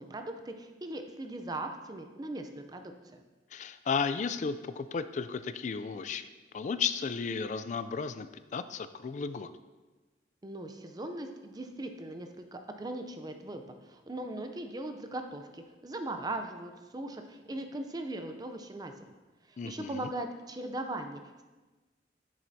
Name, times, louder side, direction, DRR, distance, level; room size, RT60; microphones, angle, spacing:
voice 1, 0.0-3.2 10.4-18.9 19.5-21.4, right 1 dB, 20° right, 6 dB, 0.5 m, -39 dB
voice 2, 3.5-6.3 6.5-8.3 8.5-9.5 19.6-20.1, left 5 dB, 45° left, 12 dB, 0.3 m, -34 dB
7.4 x 7.4 x 2.7 m, 1.2 s
head